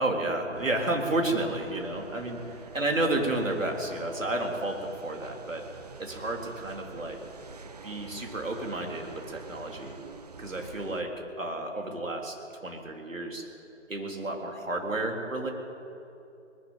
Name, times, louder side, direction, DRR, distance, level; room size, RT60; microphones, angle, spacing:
voice 1, 0.0-5.6 6.0-7.2 7.8-9.9 10.4-11.1 11.4-12.4 12.6-13.5 13.9-15.5, right 2 dB, 75° right, 1 dB, 3.6 m, -31 dB
sound 1, 0.5-11.0, right 4 dB, 30° right, 0.7 m, -46 dB
20.0 x 13.5 x 9.4 m, 2.8 s
figure-of-eight pair, 145°, 39 cm